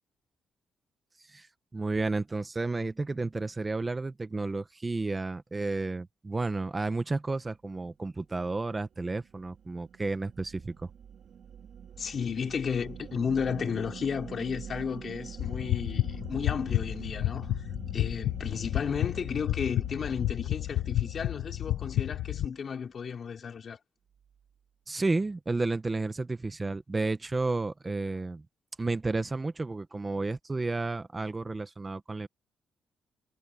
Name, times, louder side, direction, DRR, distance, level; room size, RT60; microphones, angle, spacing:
voice 1, 1.7-10.9 24.9-28.4 28.8-32.3, right 3 dB, 20° right, 1.1 m, -32 dB
sound 1, 8.6-22.9, right 8 dB, 60° right, 3.9 m, -46 dB
voice 2, 12.0-23.8, left 6 dB, 45° left, 4.6 m, -33 dB
sound 2, 15.4-22.5, left 14 dB, 90° left, 0.9 m, -31 dB
cardioid pair, 130°, 0 cm